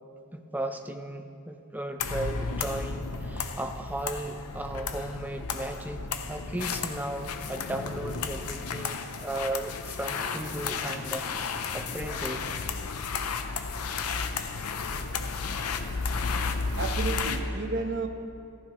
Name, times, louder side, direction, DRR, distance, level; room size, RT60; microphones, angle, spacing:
voice 1, 0.3-12.5, right 1 dB, 10° right, 6 dB, 0.5 m, -36 dB
sound 1, 2.0-17.4, left 4 dB, 90° left, 0.7 m, -33 dB
voice 2, 16.8-18.1, right 3 dB, 55° right, 5 dB, 0.9 m, -31 dB
14.5 x 14.0 x 3.0 m, 2.6 s
head